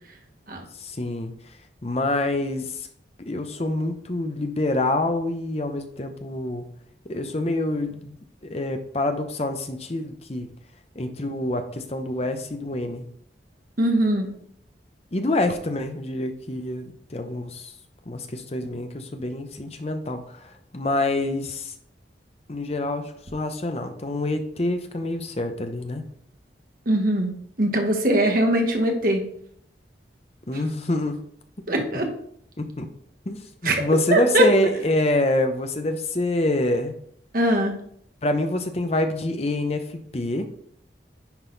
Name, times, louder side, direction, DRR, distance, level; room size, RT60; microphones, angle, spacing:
voice 1, 0.8-1.3 1.8-2.8 3.2-6.7 7.1-8.2 8.5-10.5 10.9-13.1 15.1-17.7 18.1-21.7 22.5-26.0 30.5-31.2 32.6-32.9 33.3-36.9 38.2-40.5, left 1 dB, 35° left, 7 dB, 0.8 m, -26 dB
voice 2, 13.8-14.3 26.9-27.3 27.6-29.2 31.7-32.1 33.6-33.7 34.1-34.5 37.3-37.8, right 1 dB, 50° right, 3 dB, 1.3 m, -21 dB
10.5 x 4.0 x 4.0 m, 0.67 s
head